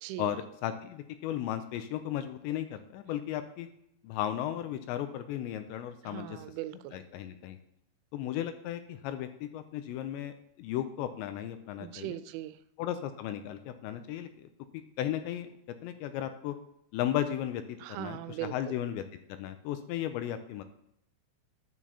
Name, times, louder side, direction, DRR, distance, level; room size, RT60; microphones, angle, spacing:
voice 1, 0.2-3.7 4.0-6.4 6.9-7.6 8.1-12.2 12.8-15.5 15.8-16.6 16.9-19.0 19.3-20.6, left 11 dB, 85° left, 9 dB, 2.7 m, -35 dB
voice 2, 6.0-7.0 11.8-12.6 17.8-18.8, right 14 dB, 90° right, 12 dB, 3.0 m, -39 dB
11.0 x 9.0 x 2.9 m, 0.75 s
omnidirectional pair, 5.4 m